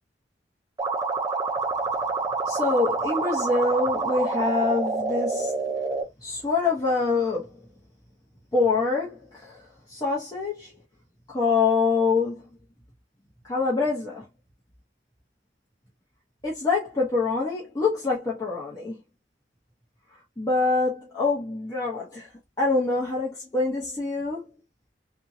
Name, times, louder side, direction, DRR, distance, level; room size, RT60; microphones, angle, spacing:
sound 1, 0.8-6.0, right 4 dB, 20° right, 0.7 m, -27 dB
voice 1, 2.4-5.5 6.2-7.5 8.5-9.6 9.9-10.7 11.3-12.5 13.5-14.2 16.4-19.0 20.4-22.3 22.6-24.5, left 3 dB, 20° left, 1.0 m, -25 dB
3.5 x 2.8 x 2.8 m
head